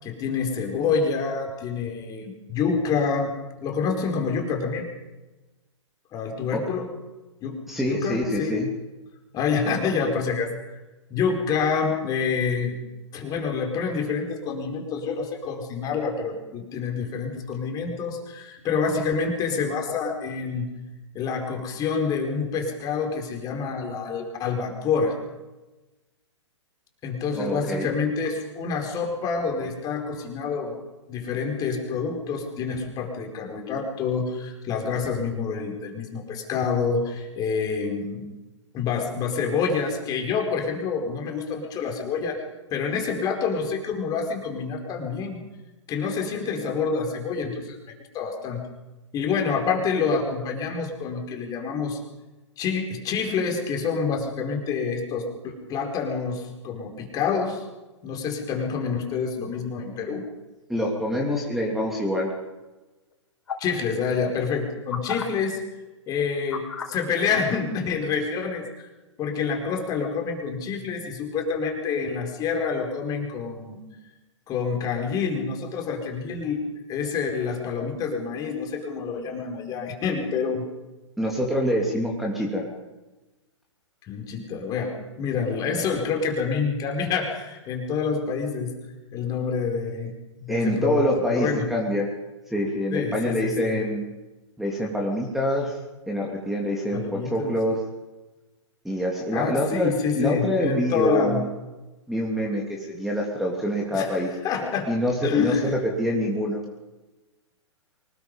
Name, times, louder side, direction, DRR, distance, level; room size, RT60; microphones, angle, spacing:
voice 1, 0.0-4.9 6.1-6.9 7.4-7.6 7.9-8.6 9.3-10.5 11.1-12.8 13.1-20.7 21.1-25.2 27.0-30.8 31.1-38.3 38.7-42.4 42.7-45.4 45.9-47.8 48.1-48.7 49.1-52.0 52.6-57.6 58.0-60.2 63.6-65.6 66.1-68.6 69.2-73.8 74.5-76.6 76.9-80.6 84.1-88.7 89.1-90.1 90.4-91.7 92.9-93.8 96.9-97.5 99.3-101.4 103.9-104.9 105.2-105.7, left 5 dB, 25° left, 3 dB, 4.5 m, -27 dB
voice 2, 7.7-8.7 27.3-27.9 60.7-62.3 81.2-82.7 90.5-92.1 92.5-94.0 94.6-95.8 96.1-97.8 98.8-101.5 102.1-104.3 104.9-106.6, equal, ahead, -1 dB, 3.1 m, -26 dB
sound 1, 63.5-63.8 64.9-65.2 66.5-67.0 67.9-68.0, left 7 dB, 65° left, 4.7 m, -32 dB
24.5 x 20.0 x 5.4 m, 1.1 s
figure-of-eight pair, 115°, 16 cm